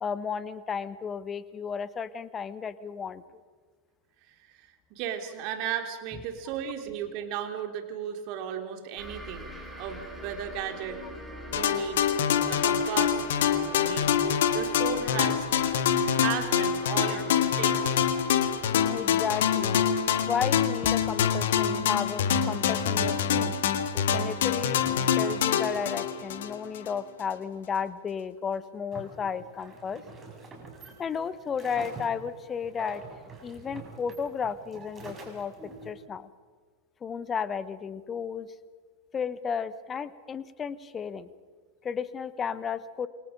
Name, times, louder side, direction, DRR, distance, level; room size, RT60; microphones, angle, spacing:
voice 1, 0.0-3.2 17.1-17.2 18.9-19.8 20.3-23.6 23.9-30.0 31.0-33.0 33.4-36.3 37.0-38.5 39.1-41.3 41.8-43.1, left 6 dB, 20° left, 16 dB, 1.2 m, -33 dB
voice 2, 4.3-9.5 9.8-11.0 11.5-12.1 12.5-13.3 13.6-14.1 14.5-15.4 16.2-18.0, right 9 dB, 45° right, 5 dB, 3.3 m, -35 dB
sound 1, 9.0-20.2, right 1 dB, 5° right, 5.3 m, -46 dB
sound 2, 11.5-26.9, left 8 dB, 60° left, 1.8 m, -25 dB
sound 3, 28.9-35.9, right 3 dB, 20° right, 6.9 m, -46 dB
28.5 x 24.0 x 5.2 m, 1.5 s
figure-of-eight pair, 90°, 0 cm